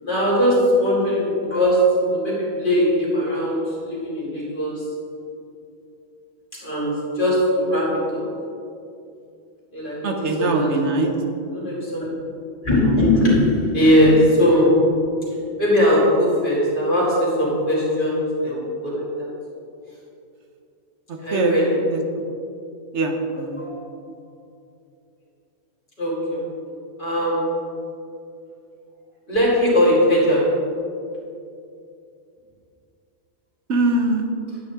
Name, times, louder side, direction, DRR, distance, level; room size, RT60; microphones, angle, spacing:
voice 1, 0.0-4.8 6.5-8.2 9.7-11.0 11.5-12.1 12.6-14.9 15.6-19.3 21.2-21.8 23.6-23.7 26.0-26.4 27.0-27.6 29.3-30.6, equal, 50° left, -6 dB, 2.9 m, -20 dB
voice 2, 10.0-11.1 21.3-21.6 21.9-22.0 22.9-23.7 33.7-34.3, right 2 dB, 85° right, 3 dB, 1.3 m, -22 dB
11.0 x 8.8 x 3.7 m, 2.5 s
omnidirectional pair, 1.1 m